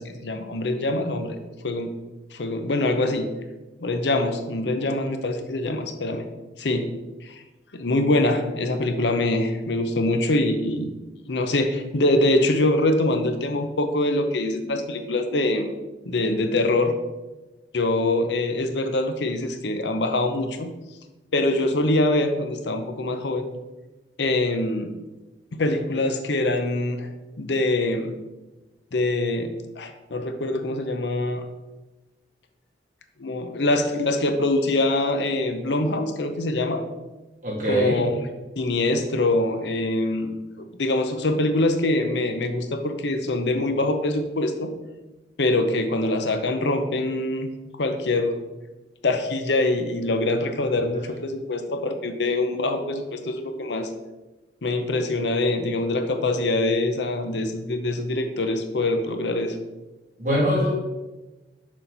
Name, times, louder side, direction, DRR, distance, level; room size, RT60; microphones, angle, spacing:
voice 1, 0.0-1.4 1.6-1.9 2.3-3.3 3.8-6.2 6.6-6.9 7.2-7.4 7.7-10.9 11.3-15.7 16.1-16.9 17.7-20.7 21.3-23.5 24.2-24.9 25.5-27.1 27.4-28.1 28.9-31.4 33.2-36.8 37.7-38.2 38.6-40.4 40.8-44.7 45.4-47.5 47.8-48.4 49.0-53.9 54.6-59.6, left 2 dB, 75° left, 7 dB, 0.7 m, -24 dB
voice 2, 37.4-38.0 60.2-60.7, equal, 45° right, -4 dB, 2.4 m, -22 dB
6.4 x 5.9 x 4.0 m, 1.1 s
head